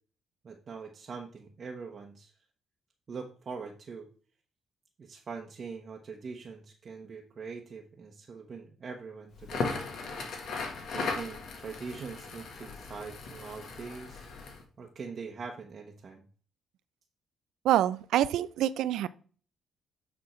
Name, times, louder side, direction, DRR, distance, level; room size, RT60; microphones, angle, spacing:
voice 1, 0.4-2.3 3.1-4.1 5.0-9.8 10.9-14.3 14.8-16.2, right 5 dB, 45° right, 1.0 m, -42 dB
Crackle, 9.4-14.6, left 4 dB, 70° left, 1.6 m, -37 dB
voice 2, 17.6-19.1, right 12 dB, 85° right, 0.4 m, -26 dB
9.0 x 3.7 x 4.4 m
cardioid pair, 90°, 0 cm